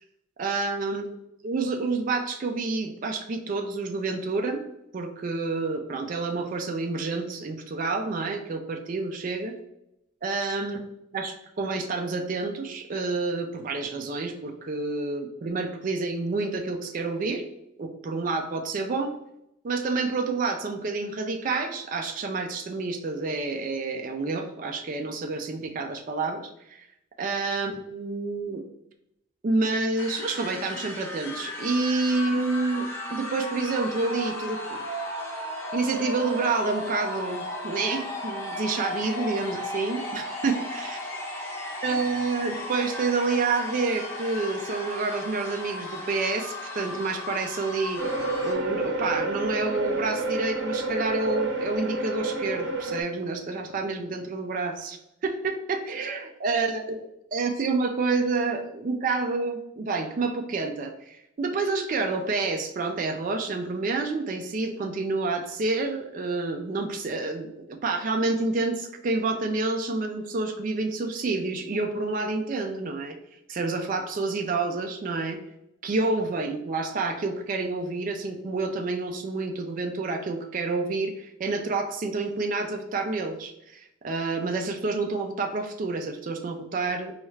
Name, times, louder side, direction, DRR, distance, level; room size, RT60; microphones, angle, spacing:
voice 1, 0.4-1.1 1.4-4.6 4.9-9.5 10.2-10.8 11.1-17.4 17.8-19.1 19.6-26.9 27.2-28.6 29.4-34.8 35.7-41.0 41.8-48.0 48.4-55.0 55.2-57.0 57.3-73.2 73.5-75.4 75.8-87.1, right 3 dB, 40° right, 4 dB, 0.3 m, -28 dB
sound 1, 30.0-48.5, left 1 dB, 10° left, 0.7 m, -35 dB
sound 2, 48.0-53.0, right 2 dB, 55° right, 0.8 m, -29 dB
4.2 x 2.3 x 3.1 m, 0.81 s
head